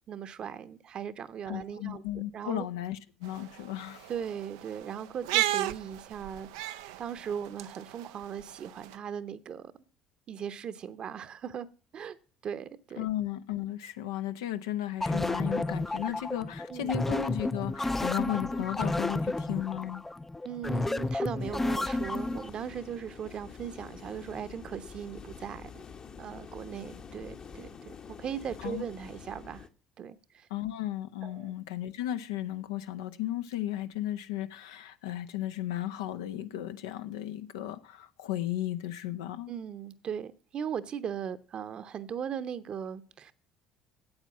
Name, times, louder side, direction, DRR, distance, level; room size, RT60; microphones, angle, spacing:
voice 1, 0.1-2.7 4.1-9.7 10.3-11.7 11.9-12.2 12.4-13.1 16.7-17.0 20.4-25.8 26.2-29.7 30.0-30.5 31.2-31.5 39.5-43.3, right 8 dB, 50° right, 0.9 m, -38 dB
voice 2, 1.5-4.1 13.0-20.0 28.6-28.8 30.5-39.5, left 13 dB, 80° left, 0.6 m, -35 dB
sound 1, 3.2-8.9, right 15 dB, 80° right, 0.4 m, -35 dB
sound 2, 15.0-22.5, left 2 dB, 15° left, 0.4 m, -31 dB
sound 3, 21.4-29.7, left 6 dB, 45° left, 1.0 m, -47 dB
8.9 x 8.1 x 7.3 m
hypercardioid pair, 65°, 2 cm